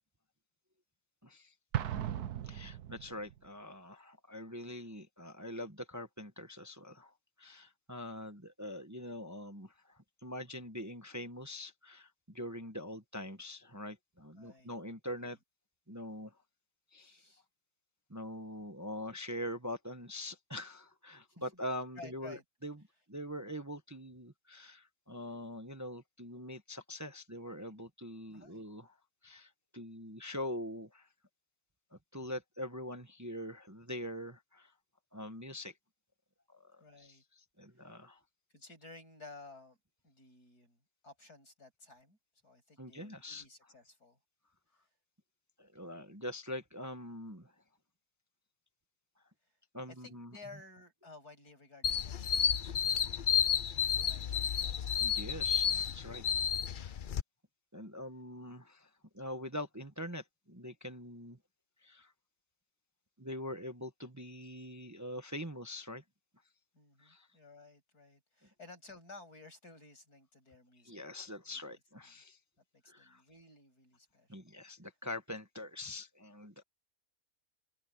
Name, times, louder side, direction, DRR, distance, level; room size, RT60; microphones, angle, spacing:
voice 1, 1.2-1.5 2.4-15.4 15.9-16.4 16.9-17.2 18.1-22.8 23.1-28.9 29.2-31.1 31.9-34.7 35.1-35.7 36.5-38.2 42.8-43.4 45.6-47.5 49.7-50.4 55.0-56.2 56.8-57.0 57.7-61.4 61.8-62.1 63.2-66.0 67.0-67.3 70.8-72.4 72.8-73.2 74.3-76.6, left 1 dB, 15° right, 1.0 m, -44 dB
Explosion, 1.7-3.4, right 11 dB, 85° right, 1.5 m, -37 dB
voice 2, 14.3-14.7 15.2-15.4 17.0-17.4 21.4-21.6 22.0-22.4 28.3-28.6 36.8-37.2 37.7-38.0 38.5-39.8 40.0-42.2 42.4-44.2 49.9-55.0 56.2-56.5 66.7-71.0 71.5-71.8 72.1-72.2 72.7-74.4, left 3 dB, 85° left, 8.7 m, -55 dB
sound 1, 51.8-57.2, left 8 dB, 55° left, 0.6 m, -31 dB
omnidirectional pair, 1.6 m